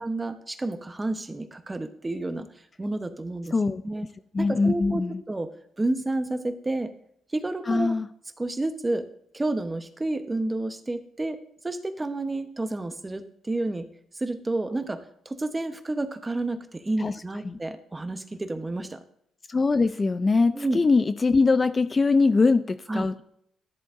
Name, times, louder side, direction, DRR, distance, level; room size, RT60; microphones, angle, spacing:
voice 1, 0.0-2.5 2.8-3.5 3.8-4.1 4.4-5.0 5.3-5.5 5.8-6.9 7.3-8.0 8.4-9.1 9.3-11.4 11.6-13.9 14.2-19.0 20.5-20.8 22.9-23.2, right 2 dB, 20° right, 9 dB, 0.9 m, -30 dB
voice 2, 3.5-3.8 4.3-5.2 7.7-8.1 17.0-17.1 17.4-17.6 19.5-23.2, left 3 dB, 30° left, 12 dB, 0.4 m, -22 dB
13.0 x 7.7 x 2.6 m, 0.70 s
cardioid pair, 90°, 0 cm